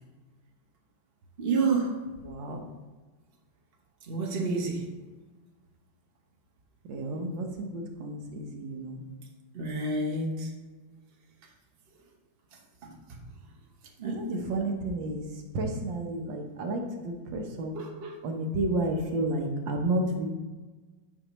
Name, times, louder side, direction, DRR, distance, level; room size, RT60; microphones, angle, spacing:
voice 1, 1.4-2.0 4.1-4.8 9.5-10.5 12.8-13.2 14.0-14.4 17.7-18.2, right 3 dB, 40° right, -1 dB, 0.9 m, -30 dB
voice 2, 2.3-2.6 6.9-9.0 14.0-15.2 15.5-17.7 18.2-20.3, right 1 dB, 65° right, 3 dB, 1.6 m, -31 dB
9.8 x 5.9 x 3.0 m, 1.3 s
omnidirectional pair, 2.3 m